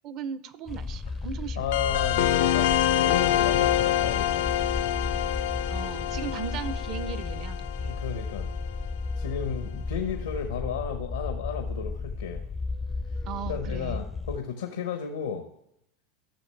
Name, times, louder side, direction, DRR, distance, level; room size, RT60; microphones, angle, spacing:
voice 1, 0.0-1.7 5.7-7.9 13.3-14.0, right 7 dB, 50° right, 15 dB, 0.7 m, -37 dB
sound 1, 0.7-14.4, left 3 dB, 15° left, 0.4 m, -34 dB
voice 2, 1.6-4.5 4.8-5.0 7.8-8.5 9.2-12.4 13.5-15.5, left 7 dB, 90° left, 6 dB, 0.9 m, -33 dB
sound 2, 1.7-8.8, left 12 dB, 75° left, 0.4 m, -26 dB
14.5 x 6.3 x 3.3 m, 0.78 s
hypercardioid pair, 95°, 0 cm